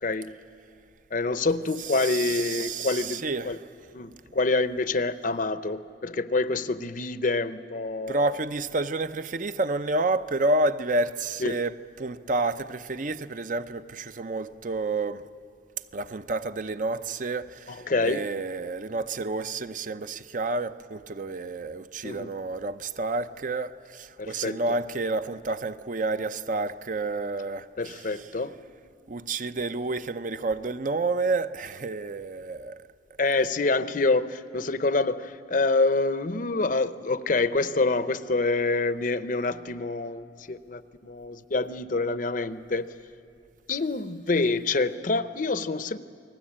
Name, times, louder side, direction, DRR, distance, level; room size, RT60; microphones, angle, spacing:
voice 1, 0.0-0.3 1.1-3.6 3.9-8.3 11.4-11.6 17.7-18.2 22.0-22.3 24.2-24.6 27.8-28.6 33.2-42.9 43.7-46.0, left 3 dB, 45° left, 0.7 m, -27 dB
voice 2, 1.8-3.6 8.1-15.2 15.9-28.3 29.1-32.8, right 2 dB, 45° right, 0.7 m, -29 dB
29.0 x 20.0 x 8.7 m
head